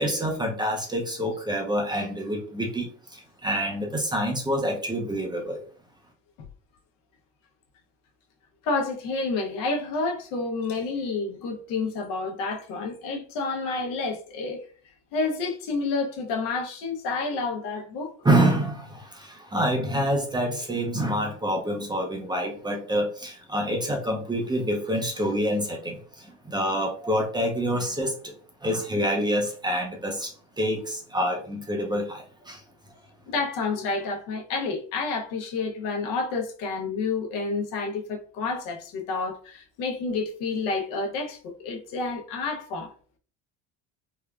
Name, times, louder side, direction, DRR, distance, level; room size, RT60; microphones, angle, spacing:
voice 1, 0.0-5.6 18.2-33.0, equal, 10° right, 0.5 m, -27 dB
voice 2, 8.6-14.6 15.1-18.1 33.3-42.9, left 3 dB, 70° left, 0.8 m, -29 dB
3.6 x 2.2 x 2.3 m
cardioid pair, 125°, 35 cm